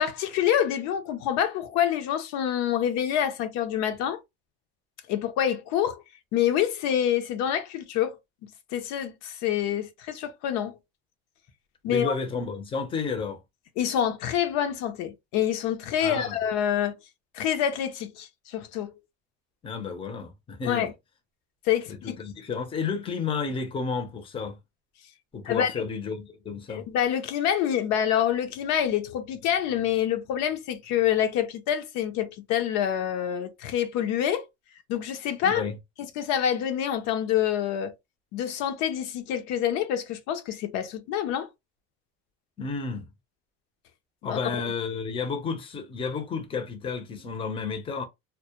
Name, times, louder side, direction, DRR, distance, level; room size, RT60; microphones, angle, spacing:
voice 1, 0.0-4.2 5.1-6.0 6.3-8.2 8.7-10.8 11.8-12.1 13.8-16.9 17.3-18.9 20.7-20.9 21.7-22.2 25.5-25.7 26.7-34.5 34.9-35.7 36.0-37.9 38.3-41.5 44.2-44.4, left 10 dB, 65° left, 0.5 m, -27 dB
voice 2, 11.9-13.4 16.0-16.4 19.6-20.9 21.9-24.6 25.3-26.9 35.4-35.8 42.6-43.1 44.2-48.0, left 5 dB, 20° left, 0.5 m, -31 dB
2.2 x 2.1 x 2.8 m
cardioid pair, 135°, 30 cm